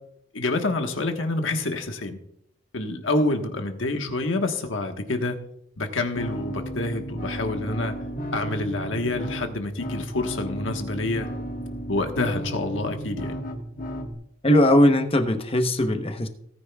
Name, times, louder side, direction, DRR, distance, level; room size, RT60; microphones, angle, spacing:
voice 1, 0.3-2.2 2.7-5.4 5.8-7.9 8.3-11.3 11.9-13.4, left 2 dB, 85° left, 5 dB, 1.3 m, -27 dB
sound 1, 6.1-14.1, equal, 45° left, 1.5 m, -33 dB
voice 2, 14.4-16.3, left 1 dB, 30° left, 7 dB, 0.9 m, -19 dB
17.5 x 9.7 x 2.3 m, 0.75 s
head